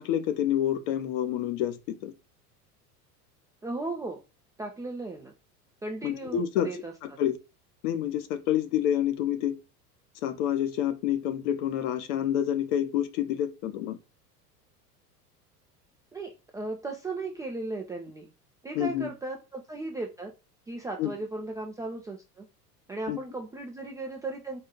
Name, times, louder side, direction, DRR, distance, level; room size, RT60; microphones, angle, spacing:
voice 1, 0.0-2.1 6.0-6.7 7.2-7.4 7.8-9.6 10.2-14.0 18.7-19.1 21.0-21.1 23.1-23.2, left 10 dB, 50° left, 0.8 m, -28 dB
voice 2, 3.6-4.2 4.6-5.3 5.8-7.2 16.1-18.3 18.6-20.3 20.7-22.5 22.9-24.6, right 2 dB, 10° right, 0.4 m, -36 dB
4.4 x 2.6 x 3.7 m
figure-of-eight pair, 75°, 47 cm